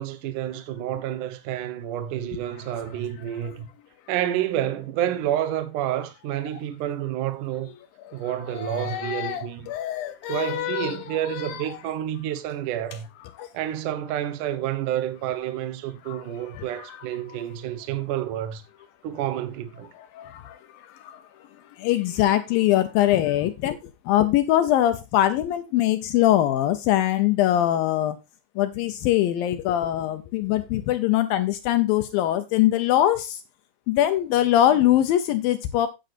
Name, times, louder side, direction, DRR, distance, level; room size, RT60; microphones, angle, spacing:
voice 1, 0.0-3.7 4.1-7.7 8.1-9.7 10.3-13.1 13.5-18.6 19.0-19.9, right 11 dB, 65° right, 2.1 m, -29 dB
voice 2, 8.1-11.8 13.4-13.5 16.1-16.3 16.6-17.0 20.0-21.2 21.8-23.8 24.1-28.2 28.6-33.4 33.9-35.9, left 13 dB, 85° left, 2.0 m, -23 dB
13.0 x 8.9 x 2.6 m
omnidirectional pair, 5.1 m